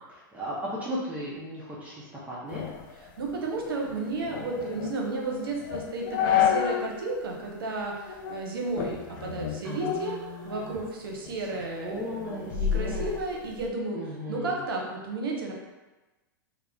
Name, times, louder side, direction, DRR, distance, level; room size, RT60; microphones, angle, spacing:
voice 1, 0.1-2.7 9.6-10.8 11.8-13.1 13.9-14.6, equal, 10° right, -7 dB, 0.5 m, -36 dB
sound 1, 2.5-7.0 7.3-7.4 8.1-8.4 8.8-10.9 11.3-13.7, left 9 dB, 60° left, 0.4 m, -30 dB
voice 2, 3.2-10.2 10.4-14.0 14.3-15.5, right 2 dB, 85° right, 0 dB, 0.7 m, -33 dB
2.4 x 2.0 x 3.5 m, 1.1 s
hypercardioid pair, 120°, 12 cm